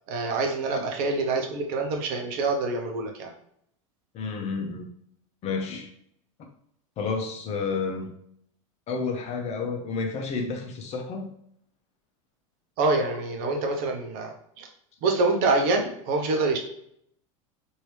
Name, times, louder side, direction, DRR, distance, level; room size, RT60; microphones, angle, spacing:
voice 1, 0.1-3.3 12.8-14.7 15.0-16.6, right 3 dB, 55° right, 2 dB, 0.8 m, -26 dB
voice 2, 4.1-4.9 5.4-5.9 7.0-8.1 8.9-11.3, left 4 dB, 40° left, 3 dB, 0.7 m, -30 dB
3.0 x 2.7 x 3.2 m, 0.71 s
hypercardioid pair, 110°, 17 cm